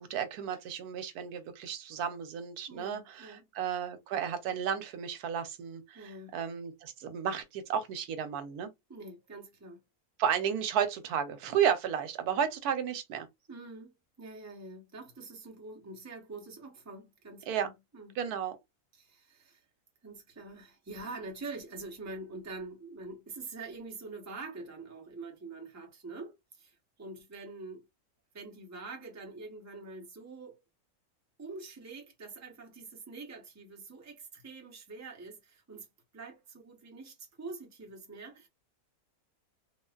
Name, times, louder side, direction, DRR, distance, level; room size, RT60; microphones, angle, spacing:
voice 1, 0.0-8.7 10.2-13.3 17.5-17.7 18.2-18.6, right 8 dB, 90° right, 1.2 m, -33 dB
voice 2, 2.7-3.4 5.9-6.4 8.9-9.8 13.5-18.1 18.9-19.6 20.0-27.9 28.3-30.6 31.4-35.9 36.1-38.5, right 3 dB, 15° right, 0.6 m, -45 dB
3.3 x 2.5 x 2.3 m
omnidirectional pair, 1.6 m